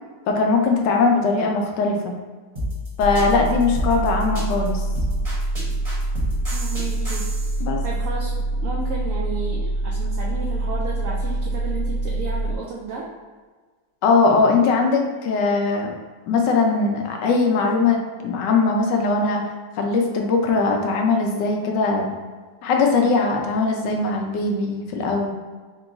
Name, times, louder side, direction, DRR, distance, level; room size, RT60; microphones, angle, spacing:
voice 1, 0.3-2.2 3.0-4.8 7.6-7.8 14.0-15.9 16.3-19.4 19.8-22.2 22.6-25.3, left 4 dB, 85° left, 2 dB, 1.2 m, -20 dB
sound 1, 2.6-7.6, equal, 25° right, 0.9 m, -30 dB
sound 2, 3.0-12.6, right 2 dB, 65° left, 0.9 m, -25 dB
voice 2, 6.5-7.3 7.8-13.1, right 3 dB, 70° right, -3 dB, 0.8 m, -33 dB
3.8 x 2.3 x 3.8 m, 1.4 s
omnidirectional pair, 1.8 m